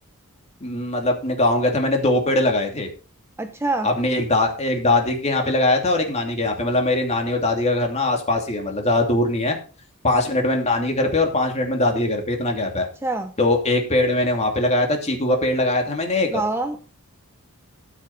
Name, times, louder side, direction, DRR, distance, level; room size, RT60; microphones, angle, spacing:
voice 1, 0.6-2.9 3.8-9.6 10.0-12.9 13.4-16.4, left 2 dB, 30° left, 3 dB, 2.8 m, -21 dB
voice 2, 3.4-3.9 13.0-13.3 16.3-16.8, right 2 dB, 10° right, 7 dB, 0.8 m, -25 dB
14.0 x 7.3 x 4.1 m, 0.34 s
head